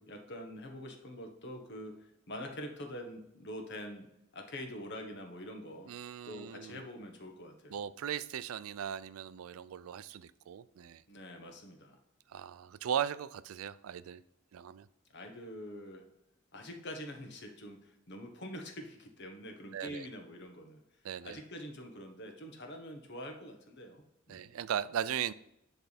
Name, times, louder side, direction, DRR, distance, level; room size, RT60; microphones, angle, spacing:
voice 1, 0.0-4.1 4.3-5.9 6.2-7.8 11.1-12.0 15.1-16.0 16.5-20.8 21.2-24.5, equal, 55° left, 4 dB, 1.2 m, -45 dB
voice 2, 5.9-6.8 7.7-11.0 12.3-14.2 14.5-14.9 19.7-20.1 21.0-21.4 24.3-25.3, right 9 dB, 90° right, 16 dB, 0.4 m, -38 dB
10.0 x 3.5 x 4.2 m, 0.81 s
head